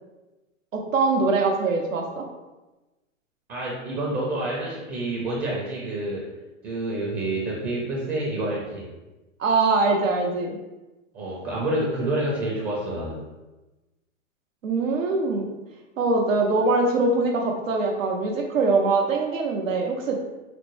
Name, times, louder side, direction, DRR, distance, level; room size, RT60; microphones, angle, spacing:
voice 1, 0.7-2.2 9.4-10.6 14.6-15.5 16.0-20.2, right 3 dB, 75° right, 2 dB, 0.8 m, -23 dB
voice 2, 3.5-6.3 6.6-8.9 11.1-13.2, right 1 dB, 25° right, -4 dB, 0.7 m, -28 dB
5.0 x 2.1 x 3.1 m, 1.1 s
hypercardioid pair, 120°, 40 cm